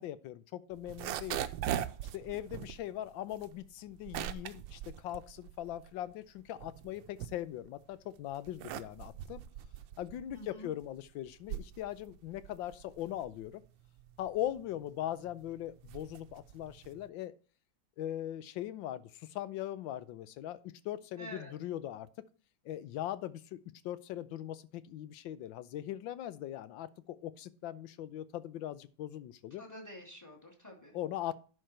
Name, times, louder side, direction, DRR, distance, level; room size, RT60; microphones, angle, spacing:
voice 1, 0.0-1.5 2.1-9.4 10.0-13.6 14.2-17.3 18.0-20.6 20.8-22.1 22.6-23.6 23.8-29.6 30.9-31.4, left 12 dB, 80° left, 15 dB, 1.4 m, -40 dB
sound 1, 0.7-6.0 6.4-7.8 8.3-17.1, right 11 dB, 80° right, 1.3 m, -41 dB
voice 2, 10.3-10.7 21.2-21.5 29.6-31.0, equal, 10° left, 2 dB, 2.5 m, -48 dB
11.0 x 4.7 x 4.5 m, 0.38 s
omnidirectional pair, 2.1 m